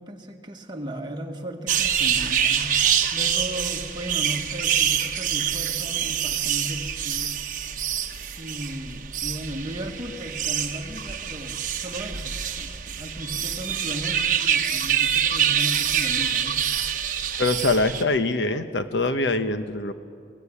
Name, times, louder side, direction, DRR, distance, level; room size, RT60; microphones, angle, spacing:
voice 1, 0.0-7.4 8.3-16.6, equal, 25° right, 3 dB, 1.7 m, -36 dB
sound 1, 1.7-18.0, right 9 dB, 50° right, 1.1 m, -26 dB
voice 2, 17.4-19.9, left 2 dB, 90° left, 10 dB, 1.1 m, -23 dB
25.0 x 17.0 x 8.5 m, 2.3 s
head